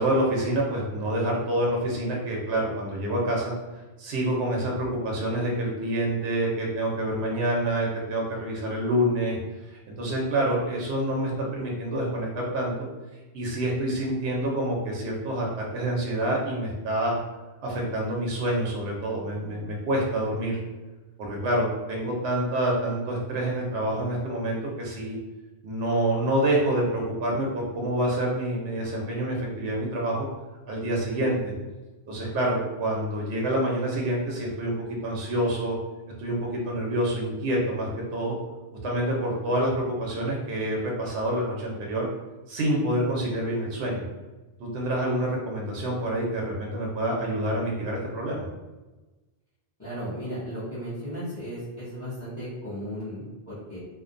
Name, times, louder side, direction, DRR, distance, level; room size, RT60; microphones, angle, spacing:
voice 1, 0.0-3.5 4.0-9.4 10.0-12.9 13.3-17.2 17.6-20.6 21.2-25.2 25.6-30.3 30.7-31.5 32.1-34.7 35.0-35.8 36.2-38.4 38.8-42.1 42.5-44.0 44.6-48.5, right 1 dB, 85° right, -2 dB, 0.9 m, -27 dB
voice 2, 49.8-53.8, equal, 20° left, -14 dB, 0.8 m, -35 dB
2.5 x 2.1 x 2.5 m, 1.1 s
omnidirectional pair, 1.1 m